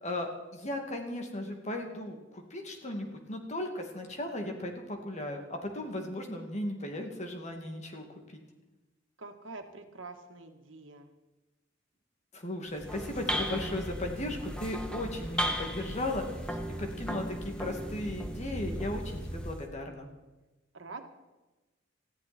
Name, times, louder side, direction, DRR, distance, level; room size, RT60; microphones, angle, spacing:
voice 1, 0.0-8.4 12.3-20.1, left 1 dB, 35° left, 3 dB, 2.4 m, -36 dB
voice 2, 9.2-11.1 20.7-21.0, right 3 dB, 85° right, 5 dB, 1.8 m, -45 dB
sound 1, 12.7-19.7, equal, 5° left, 1.5 m, -36 dB
20.0 x 14.5 x 4.4 m, 1.1 s
head